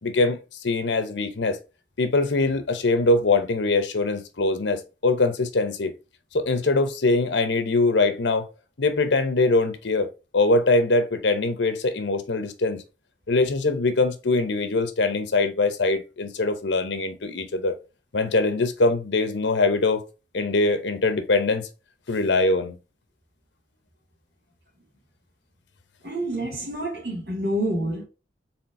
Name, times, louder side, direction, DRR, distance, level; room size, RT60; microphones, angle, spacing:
voice 1, 0.0-1.6 2.0-5.9 6.3-8.5 8.8-10.1 10.3-12.8 13.3-17.8 18.1-20.1 20.3-21.7 22.1-22.8, left 3 dB, 85° left, 0.8 m, -22 dB
voice 2, 26.0-28.0, right 1 dB, 60° right, 1.9 m, -28 dB
4.4 x 3.7 x 2.6 m
head